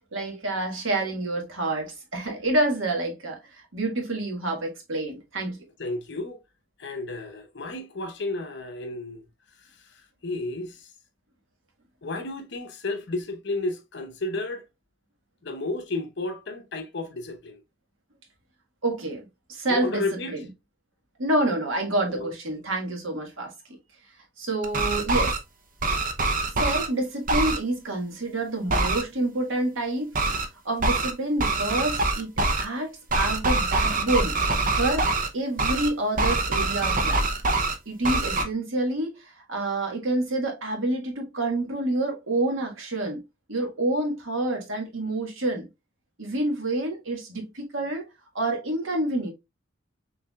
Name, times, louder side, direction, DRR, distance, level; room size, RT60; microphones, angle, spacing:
voice 1, 0.1-5.6 18.8-20.4 21.2-23.5 24.4-25.4 26.6-30.1 30.6-32.9 33.1-34.3 34.8-35.1 35.3-37.3 37.8-43.2 43.5-45.6 46.2-48.1 48.3-49.3, right 2 dB, 80° right, 1.6 m, -28 dB
voice 2, 5.8-6.4 6.8-9.2 9.6-10.9 12.0-14.6 15.4-17.6 19.7-20.3 22.1-22.3, left 2 dB, 60° left, 1.0 m, -32 dB
sound 1, 24.6-25.4 25.8-26.9 27.3-27.6 28.7-29.0 30.1-30.5 30.8-31.1 31.4-32.7 33.1-35.3 35.6-35.9 36.2-37.8 38.0-38.4, right 2 dB, 45° right, 0.7 m, -24 dB
6.0 x 3.4 x 2.3 m
head